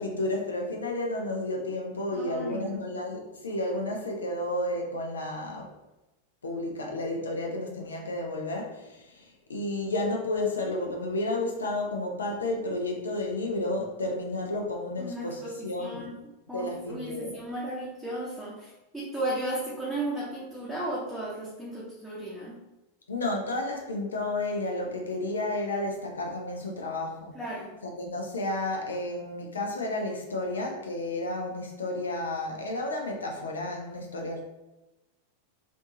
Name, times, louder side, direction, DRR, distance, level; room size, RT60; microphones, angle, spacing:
voice 1, 0.0-5.7 6.4-16.1 16.5-17.4 23.1-27.3 27.8-34.4, left 2 dB, 70° left, 1 dB, 0.7 m, -32 dB
voice 2, 2.1-2.8 15.0-16.1 16.5-22.6 27.3-27.7, right 1 dB, ahead, -8 dB, 0.8 m, -35 dB
3.5 x 2.6 x 2.7 m, 1.0 s
figure-of-eight pair, 90°, 0 cm